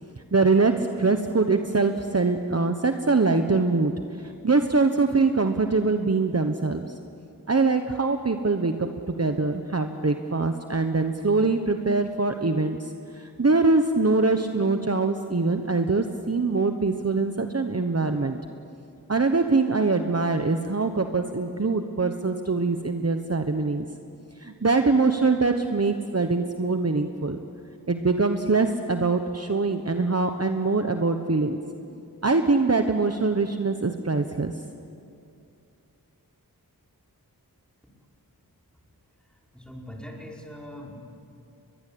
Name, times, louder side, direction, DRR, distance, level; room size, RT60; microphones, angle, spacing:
voice 1, 0.3-6.9 7.5-18.4 19.1-23.8 24.4-27.4 27.9-31.6 32.2-34.5, right 3 dB, 40° right, 6 dB, 1.1 m, -23 dB
voice 2, 39.5-41.0, left 1 dB, ahead, -2 dB, 5.3 m, -41 dB
22.5 x 22.0 x 8.7 m, 2.5 s
wide cardioid pair, 50°, 37 cm